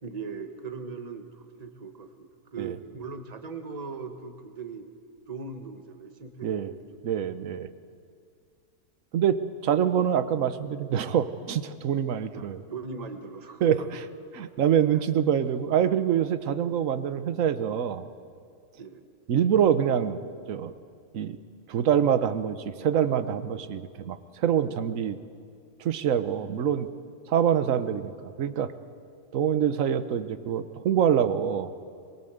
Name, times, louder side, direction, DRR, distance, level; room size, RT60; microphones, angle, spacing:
voice 1, 0.0-4.9 5.3-6.8 12.3-13.9 14.3-14.5 14.9-15.0 18.8-19.0, right 4 dB, 25° right, 7 dB, 1.4 m, -39 dB
voice 2, 7.0-7.7 9.1-12.6 13.6-13.8 14.3-18.0 19.3-20.2 20.5-20.7 21.1-21.4 21.7-25.2 25.8-26.9 27.3-28.7 29.3-31.7, right 9 dB, 60° right, 12 dB, 1.3 m, -25 dB
23.0 x 22.0 x 7.9 m, 2.3 s
omnidirectional pair, 1.6 m